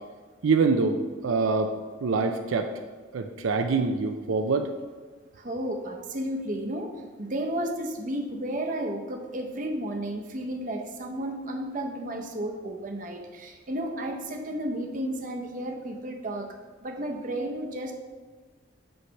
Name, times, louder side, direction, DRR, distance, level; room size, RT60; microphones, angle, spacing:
voice 1, 0.4-2.7 3.1-4.7, right 4 dB, 80° right, 6 dB, 0.4 m, -25 dB
voice 2, 5.3-6.9 7.2-17.9, right 1 dB, 40° right, 2 dB, 0.7 m, -33 dB
7.8 x 3.3 x 5.6 m, 1.4 s
head